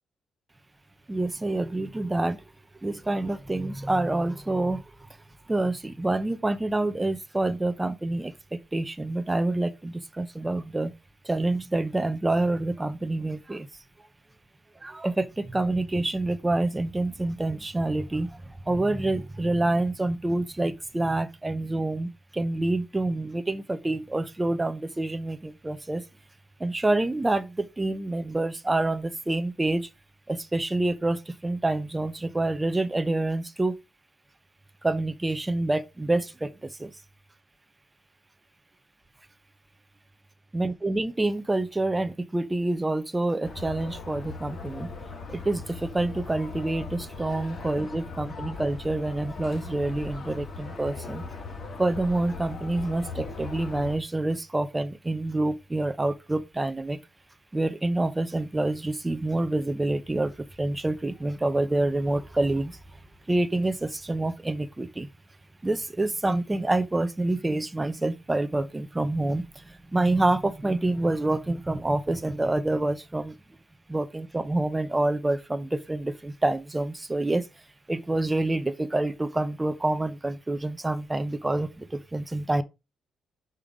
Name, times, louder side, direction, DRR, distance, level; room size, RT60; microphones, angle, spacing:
voice 1, 1.1-2.4 2.8-4.9 5.5-10.9 11.2-13.7 14.0-14.1 14.8-26.0 26.6-29.9 30.3-33.7 34.8-37.0 40.5-44.9 45.3-51.2 51.8-57.0 57.5-62.8 63.3-65.1 65.6-73.3 73.9-77.5 77.9-82.6, right 2 dB, 15° right, 0.6 m, -27 dB
sound 1, 43.4-54.0, left 4 dB, 45° left, 1.9 m, -39 dB
5.6 x 5.2 x 4.8 m
cardioid pair, 120°, 0 cm